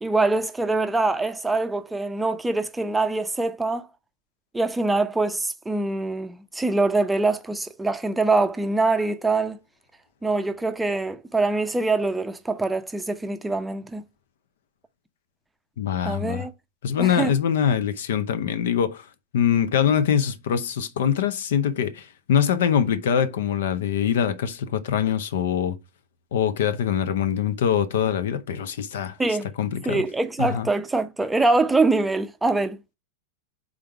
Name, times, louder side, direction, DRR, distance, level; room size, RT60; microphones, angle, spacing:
voice 1, 0.0-3.9 4.5-9.6 10.2-14.0 16.0-16.5 17.0-17.3 29.2-29.5 29.9-32.8, right 3 dB, 10° right, 0.6 m, -24 dB
voice 2, 15.8-16.5 16.8-19.0 19.3-25.8 26.3-29.2 29.6-30.0 30.4-30.7, left 8 dB, 60° left, 0.8 m, -23 dB
5.0 x 4.0 x 5.8 m
figure-of-eight pair, 90°, 0 cm